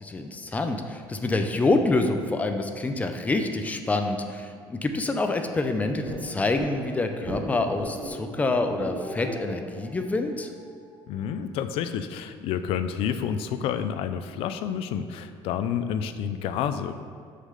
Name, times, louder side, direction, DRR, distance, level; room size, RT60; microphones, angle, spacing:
voice 1, 0.0-10.5, left 2 dB, 15° left, 6 dB, 0.6 m, -27 dB
sound 1, 6.0-11.2, right 1 dB, 45° right, 1.8 m, -38 dB
voice 2, 11.1-16.9, left 8 dB, 70° left, 10 dB, 0.5 m, -29 dB
6.6 x 5.6 x 6.6 m, 2.2 s
cardioid pair, 155°, 10 cm